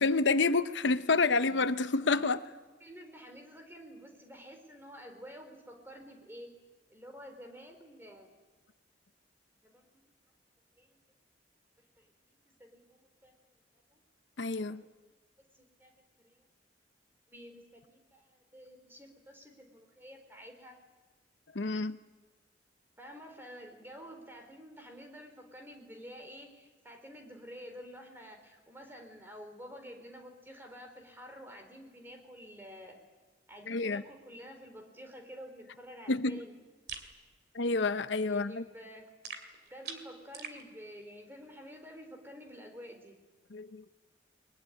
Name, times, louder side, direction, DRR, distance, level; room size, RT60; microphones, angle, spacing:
voice 1, 0.0-2.5 14.4-14.8 21.5-22.0 33.7-34.0 36.1-36.4 37.5-38.6 43.5-43.8, left 3 dB, 75° left, 0.8 m, -28 dB
voice 2, 2.8-6.5 6.9-8.3 9.6-9.8 10.8-11.0 12.0-13.3 13.9-14.0 14.5-14.6 15.4-15.9 16.2-16.4 17.3-20.8 23.0-33.0 33.5-36.6 38.3-39.1 39.7-43.2, equal, 10° right, 3.9 m, -50 dB
sound 1, 36.9-37.1 39.2-40.6, right 6 dB, 55° right, 2.7 m, -43 dB
22.5 x 22.0 x 9.9 m
head